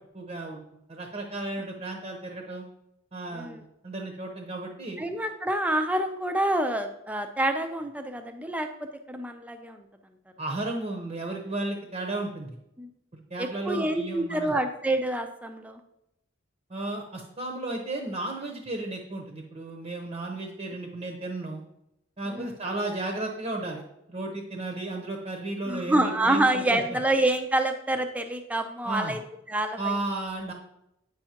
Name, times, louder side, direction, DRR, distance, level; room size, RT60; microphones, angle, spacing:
voice 1, 0.1-2.6 3.1-5.0 10.4-12.5 13.1-14.5 16.7-21.6 22.2-23.8 24.1-26.8 28.8-29.1 29.8-30.5, right 2 dB, 35° right, 2 dB, 0.8 m, -34 dB
voice 2, 3.3-3.6 5.0-8.7 9.1-9.8 12.8-12.9 13.4-15.8 22.3-22.5 25.7-29.2 29.5-30.0, right 1 dB, 5° right, 6 dB, 0.5 m, -27 dB
9.0 x 5.4 x 2.9 m, 0.83 s
head